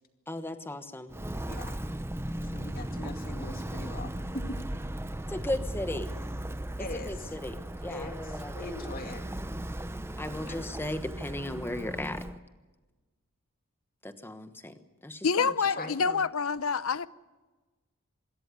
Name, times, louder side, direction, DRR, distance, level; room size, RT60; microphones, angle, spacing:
voice 1, 0.3-1.1 5.3-6.1 6.9-8.7 10.2-12.2 14.0-14.7 15.0-15.5 15.8-16.2, left 1 dB, 10° left, 1.2 m, -36 dB
Walk footsteps, 1.1-12.4, right 1 dB, 10° right, 0.7 m, -37 dB
voice 2, 1.5-1.8 2.5-4.6 6.8-7.1 7.9-9.2 10.5-10.6 15.8-15.9, left 2 dB, 40° left, 2.4 m, -41 dB
voice 3, 15.2-17.1, left 5 dB, 70° left, 0.7 m, -27 dB
25.5 x 13.5 x 9.8 m
head